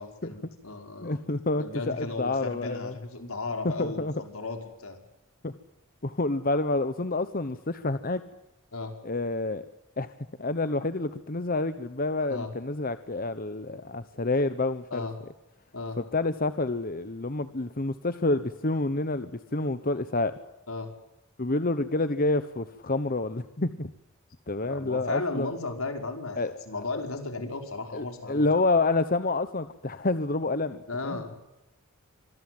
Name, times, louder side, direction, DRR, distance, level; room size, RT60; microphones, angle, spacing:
voice 1, 0.0-1.2 1.6-5.0 8.7-8.9 12.3-12.5 14.9-15.2 15.7-16.0 20.7-20.9 24.6-26.4 26.7-28.5 30.9-31.4, left 3 dB, 85° left, 5 dB, 5.3 m, -35 dB
voice 2, 1.0-2.9 3.6-4.1 5.4-5.6 6.0-8.2 9.0-9.6 10.0-10.1 10.4-15.1 16.0-20.3 21.4-23.9 24.5-25.5 26.4-26.5 26.9-27.0 27.9-30.8 31.0-31.2, left 2 dB, 40° left, 12 dB, 1.1 m, -28 dB
26.0 x 20.5 x 7.9 m, 0.90 s
head